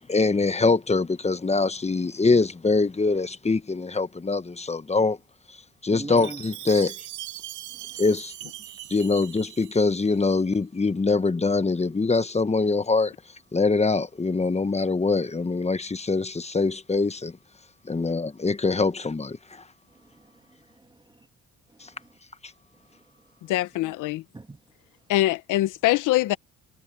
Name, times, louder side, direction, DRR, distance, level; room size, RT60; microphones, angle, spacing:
voice 1, 0.1-5.2 5.8-6.9 8.0-8.3 8.9-13.1 13.5-17.3 17.9-19.4, left 3 dB, 20° left, 1.2 m, -23 dB
voice 2, 5.9-6.5 7.7-8.0 17.9-18.1 19.9-21.3 21.7-22.2 22.7-23.5 24.3-24.6, right 2 dB, 15° right, 2.1 m, -45 dB
Chime, 6.2-10.3, right 14 dB, 75° right, 1.0 m, -40 dB
voice 3, 23.5-24.2 25.1-26.4, left 15 dB, 90° left, 0.9 m, -23 dB
cardioid pair, 90°, 30 cm